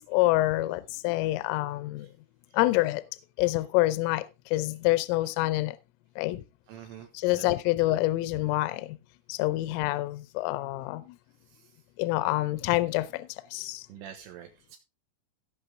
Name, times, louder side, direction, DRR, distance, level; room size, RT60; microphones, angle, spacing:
voice 1, 0.1-2.1 2.5-3.1 3.4-5.8 6.2-6.4 7.1-9.0 9.3-11.2 12.0-13.9, left 18 dB, 80° left, 3.1 m, -27 dB
voice 2, 6.7-7.5 13.9-14.8, right 10 dB, 75° right, 3.7 m, -45 dB
17.0 x 6.0 x 3.7 m
omnidirectional pair, 6.0 m